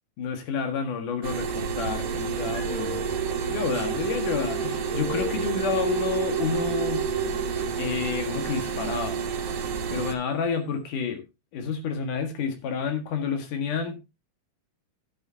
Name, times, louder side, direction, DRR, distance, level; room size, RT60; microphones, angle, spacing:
voice 1, 0.2-3.1 3.4-7.1 7.8-9.2 9.9-11.2 11.5-14.0, left 6 dB, 85° left, 3.4 m, -29 dB
sound 1, 1.2-10.1, right 6 dB, 60° right, 2.2 m, -30 dB
sound 2, 2.0-8.2, right 6 dB, 70° left, 4.0 m, -32 dB
12.0 x 10.5 x 2.8 m
omnidirectional pair, 3.6 m